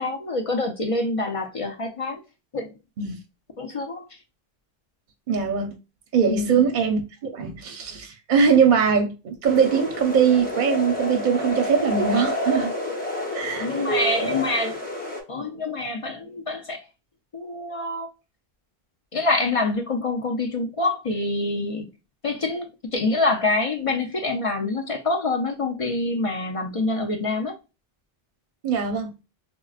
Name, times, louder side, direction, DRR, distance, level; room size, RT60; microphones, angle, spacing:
voice 1, 0.0-2.2 2.5-2.8 3.6-4.0 6.3-6.6 13.6-14.8 15.3-16.8 17.3-18.1 19.1-21.9 22.2-27.6, left 2 dB, 45° left, 0.5 m, -26 dB
voice 2, 5.3-5.8 6.1-12.7 13.3-14.2 28.6-29.1, right 6 dB, 55° right, 0.7 m, -21 dB
sound 1, 9.4-15.2, left 1 dB, 10° left, 0.8 m, -29 dB
4.5 x 2.0 x 2.4 m
omnidirectional pair, 1.0 m